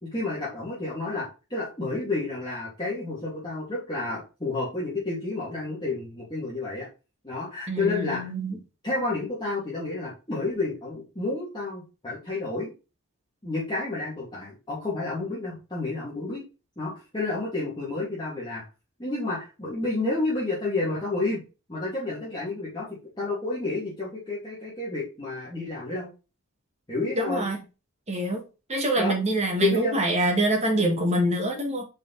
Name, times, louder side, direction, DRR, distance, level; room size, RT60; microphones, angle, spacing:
voice 1, 0.0-6.9 7.2-8.3 8.8-12.7 13.4-16.4 16.8-18.6 19.0-21.4 21.7-22.9 23.2-26.1 26.9-27.4 29.0-29.2 29.6-30.0, left 2 dB, 20° left, 2.6 m, -30 dB
voice 2, 7.7-8.6 27.2-27.6 28.1-28.4 28.7-31.8, right 1 dB, 30° right, 1.9 m, -25 dB
5.2 x 5.2 x 4.1 m
head